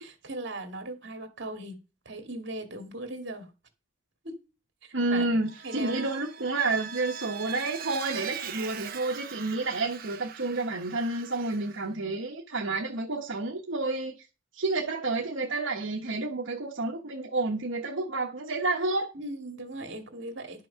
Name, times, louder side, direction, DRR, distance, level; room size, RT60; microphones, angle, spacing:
voice 1, 0.0-1.8 2.1-3.5 4.2-4.4 4.8-5.3 5.6-6.0 19.1-20.7, right 2 dB, 60° right, 2.1 m, -38 dB
voice 2, 4.9-14.1 14.5-19.1, right 2 dB, 75° right, 1.2 m, -30 dB
Vehicle, 5.5-11.8, right 7 dB, 45° right, 0.9 m, -41 dB
11.0 x 6.2 x 5.7 m
head